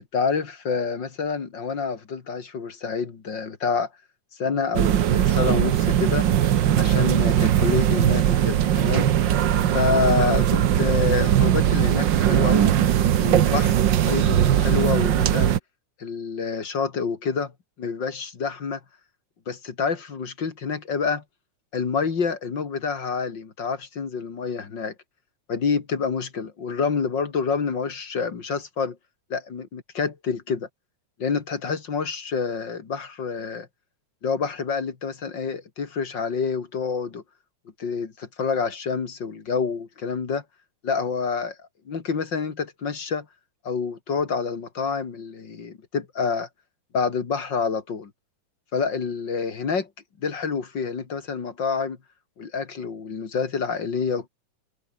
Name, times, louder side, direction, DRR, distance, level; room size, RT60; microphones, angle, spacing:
voice 1, 0.1-3.9 4.4-6.3 6.8-9.1 9.7-12.8 13.2-15.5 16.0-17.5 17.8-18.8 19.5-21.2 21.7-24.9 25.5-29.0 29.3-30.7 31.2-33.7 34.2-37.2 37.8-40.4 40.8-41.6 41.9-43.3 43.6-46.5 46.9-48.1 48.7-49.9 50.2-52.0 52.4-54.3, left 5 dB, 40° left, 2.5 m, -27 dB
sound 1, 4.7-15.6, right 10 dB, 85° right, 1.0 m, -20 dB
omnidirectional pair, 3.5 m